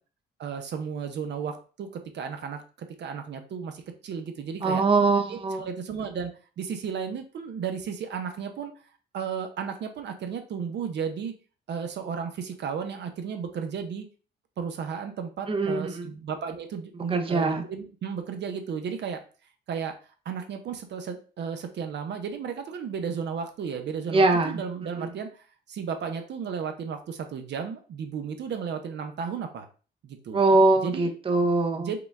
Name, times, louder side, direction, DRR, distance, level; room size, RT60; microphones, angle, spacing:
voice 1, 0.4-1.9 2.1-4.8 5.3-6.3 6.6-8.7 9.1-11.4 11.7-14.1 14.6-19.2 19.7-20.0 20.3-29.7 30.0-30.4 30.8-31.1 31.8-32.0, right 6 dB, 60° right, 6 dB, 0.7 m, -34 dB
voice 2, 4.6-5.7 15.5-16.1 17.1-17.6 24.1-24.6 25.0-25.1 30.3-31.9, right 3 dB, 25° right, 6 dB, 0.7 m, -22 dB
4.9 x 2.3 x 3.3 m, 0.37 s
cardioid pair, 90°, 20 cm